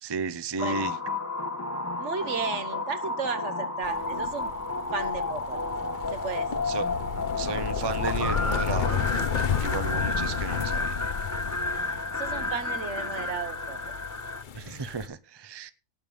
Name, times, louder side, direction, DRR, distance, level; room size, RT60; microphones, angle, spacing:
voice 1, 0.0-1.0 6.7-6.9 7.3-10.9 14.5-15.7, right 5 dB, 25° right, 14 dB, 0.6 m, -34 dB
sound 1, 0.6-14.4, left 3 dB, 15° left, 0.9 m, -31 dB
voice 2, 2.0-4.5 4.9-5.6 6.1-6.6 10.5-10.6 11.7-13.8, right 5 dB, 60° right, 11 dB, 1.6 m, -34 dB
sound 2, 3.8-15.1, left 7 dB, 45° left, 0.7 m, -33 dB
sound 3, 6.9-12.5, left 2 dB, 85° left, 8.6 m, -43 dB
18.0 x 6.6 x 5.5 m, 0.30 s
omnidirectional pair, 1.4 m